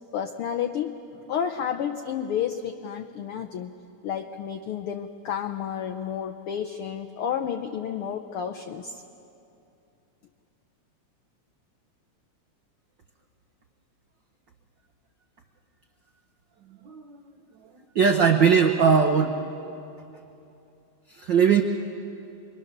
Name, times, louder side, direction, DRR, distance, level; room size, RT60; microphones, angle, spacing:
voice 1, 0.1-0.9 1.3-3.7 4.0-9.0, left 8 dB, 85° left, 7 dB, 1.2 m, -31 dB
voice 2, 16.8-17.2 17.9-19.4 21.1-21.6, right 6 dB, 85° right, 4 dB, 1.0 m, -20 dB
27.0 x 22.5 x 6.6 m, 2.7 s
omnidirectional pair, 3.4 m